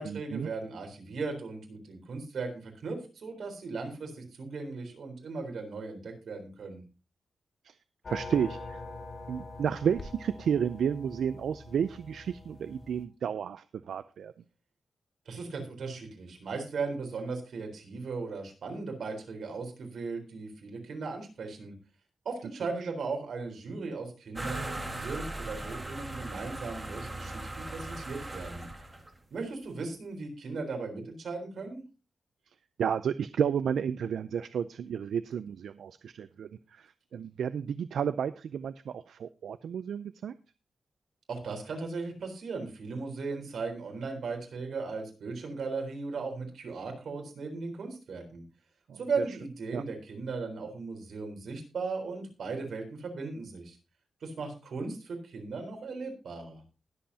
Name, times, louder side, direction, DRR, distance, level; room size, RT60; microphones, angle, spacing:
voice 1, 0.0-6.8 15.3-21.7 22.2-28.7 29.3-31.8 41.3-48.4 49.0-53.8 54.2-56.6, right 4 dB, 65° right, 3 dB, 3.9 m, -37 dB
sound 1, 8.0-13.0, left 3 dB, 35° left, 1.8 m, -44 dB
voice 2, 8.1-8.8 9.3-14.3 22.8-22.9 32.8-40.3 48.9-49.0 49.7-49.8, right 8 dB, 85° right, 13 dB, 0.4 m, -32 dB
sound 2, 24.3-29.2, right 1 dB, 15° right, 1.9 m, -39 dB
20.5 x 7.6 x 2.8 m, 0.32 s
wide cardioid pair, 150°, 0 cm